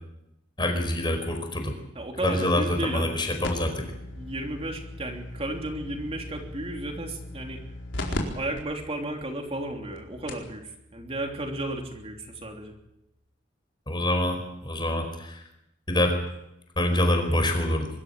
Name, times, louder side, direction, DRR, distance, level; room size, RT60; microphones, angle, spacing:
voice 1, 0.6-1.7 2.2-3.9 13.9-15.4 15.9-16.2 16.8-17.9, left 1 dB, 25° left, 5 dB, 4.7 m, -25 dB
voice 2, 1.9-3.2 4.1-7.6 8.1-12.7, right 1 dB, 30° right, 2 dB, 3.2 m, -34 dB
sound 1, 3.4-8.2 8.6-8.7 9.3-9.4 10.0-10.1 10.3-10.5 11.8-11.9, left 1 dB, 75° left, 4.4 m, -37 dB
24.0 x 13.5 x 9.1 m, 0.85 s
head